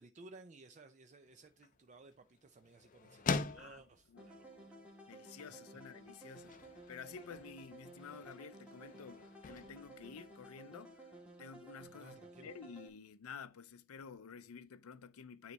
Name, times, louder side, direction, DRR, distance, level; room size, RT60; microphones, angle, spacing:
voice 1, 0.0-4.8 11.8-12.5, right 3 dB, 35° right, 0.4 m, -58 dB
sound 1, 1.2-11.0, left 4 dB, 40° left, 0.4 m, -45 dB
sound 2, 4.2-12.9, right 2 dB, 5° right, 1.4 m, -55 dB
voice 2, 5.1-6.6 6.9-11.0 11.4-15.5, left 6 dB, 90° left, 0.5 m, -51 dB
9.4 x 3.3 x 4.0 m
head